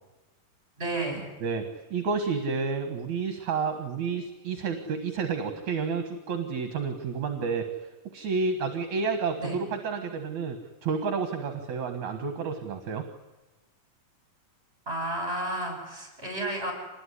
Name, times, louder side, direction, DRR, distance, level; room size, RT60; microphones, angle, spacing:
voice 1, 0.8-1.2 9.4-9.6 14.9-16.7, right 1 dB, 15° right, 3 dB, 7.9 m, -32 dB
voice 2, 1.4-7.7 8.1-13.1, right 5 dB, 60° right, 7 dB, 2.7 m, -30 dB
26.0 x 20.5 x 9.9 m, 1.1 s
omnidirectional pair, 3.9 m